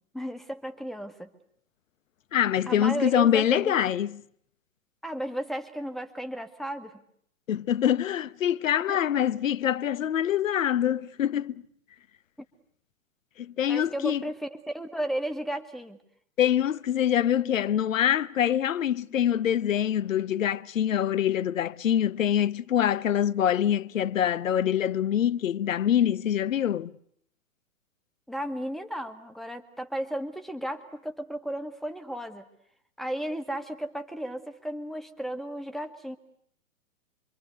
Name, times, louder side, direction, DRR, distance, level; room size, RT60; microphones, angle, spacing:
voice 1, 0.1-1.3 2.7-3.8 5.0-7.0 8.9-9.0 13.7-16.0 28.3-32.4 33.0-36.2, right 1 dB, ahead, 2.0 m, -34 dB
voice 2, 2.3-4.2 7.5-11.6 13.4-14.2 16.4-26.9, left 10 dB, 70° left, 1.1 m, -25 dB
27.5 x 25.0 x 8.1 m
hypercardioid pair, 120°, 41 cm